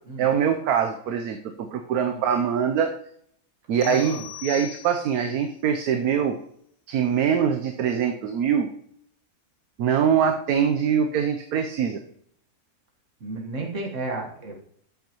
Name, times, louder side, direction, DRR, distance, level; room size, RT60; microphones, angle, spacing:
voice 1, 0.2-2.9 3.7-6.4 6.9-8.7 9.8-12.0, right 7 dB, 70° right, 5 dB, 1.2 m, -23 dB
sound 1, 3.8-5.3, left 15 dB, 90° left, 1.4 m, -40 dB
voice 2, 3.8-4.2 13.2-14.6, right 2 dB, 50° right, 1 dB, 1.8 m, -33 dB
13.5 x 8.0 x 3.0 m, 0.68 s
omnidirectional pair, 1.7 m